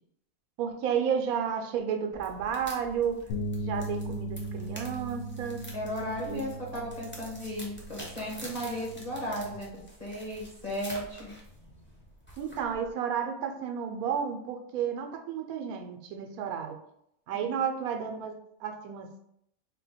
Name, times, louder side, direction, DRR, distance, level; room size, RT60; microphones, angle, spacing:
voice 1, 0.6-3.2 3.6-5.6 6.3-6.4 12.4-16.8 17.3-18.3 18.6-19.1, right 7 dB, 85° right, 4 dB, 1.1 m, -32 dB
sound 1, 2.1-12.9, equal, 10° left, 0.5 m, -48 dB
sound 2, 3.3-9.6, right 1 dB, 70° left, 1.0 m, -38 dB
voice 2, 5.7-11.3 17.3-17.5, equal, 30° left, -5 dB, 0.9 m, -35 dB
3.6 x 2.2 x 4.1 m, 0.75 s
omnidirectional pair, 1.5 m